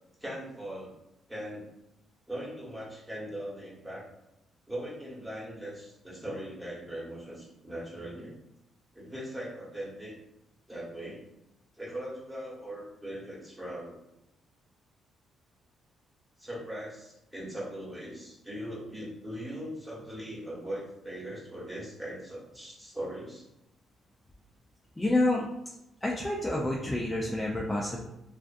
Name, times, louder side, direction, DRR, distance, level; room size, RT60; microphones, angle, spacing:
voice 1, 0.2-0.9 1.3-1.6 2.3-4.1 4.7-8.3 8.9-10.2 10.7-11.2 11.8-14.0 16.4-23.4, right 1 dB, 10° right, -6 dB, 1.1 m, -40 dB
voice 2, 25.0-25.5 26.0-28.1, left 2 dB, 10° left, -3 dB, 0.4 m, -28 dB
2.4 x 2.4 x 2.4 m, 0.88 s
cardioid pair, 90°, 0 cm